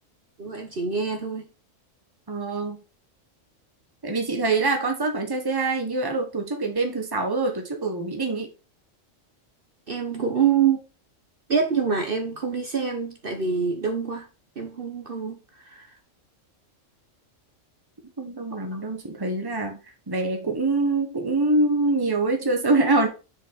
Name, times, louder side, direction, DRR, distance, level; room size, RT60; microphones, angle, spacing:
voice 1, 0.4-1.5 9.9-10.8 11.5-14.3 14.6-15.4 15.7-15.9, right 6 dB, 45° right, 1.3 m, -25 dB
voice 2, 2.3-2.8 4.0-8.5 18.2-19.8 20.1-23.1, right 3 dB, 20° right, 1.3 m, -24 dB
6.2 x 5.3 x 4.1 m
omnidirectional pair, 1.3 m